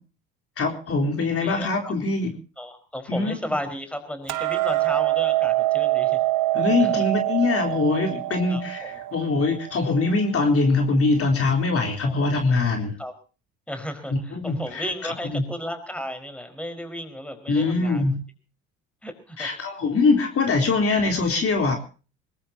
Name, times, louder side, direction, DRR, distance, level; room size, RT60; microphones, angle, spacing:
voice 1, 0.6-2.3 3.1-3.4 6.5-12.9 14.1-15.4 17.5-18.2 19.4-21.8, left 3 dB, 45° left, 3 dB, 4.0 m, -23 dB
voice 2, 1.2-1.9 2.6-6.2 6.8-7.0 8.5-9.0 12.0-12.1 13.0-13.1 13.7-18.0 19.0-19.5, equal, 5° left, 8 dB, 5.0 m, -34 dB
Hammer, 4.3-10.5, right 17 dB, 65° right, 1.3 m, -25 dB
21.0 x 20.5 x 2.9 m, 0.36 s
supercardioid pair, 75°, 33 cm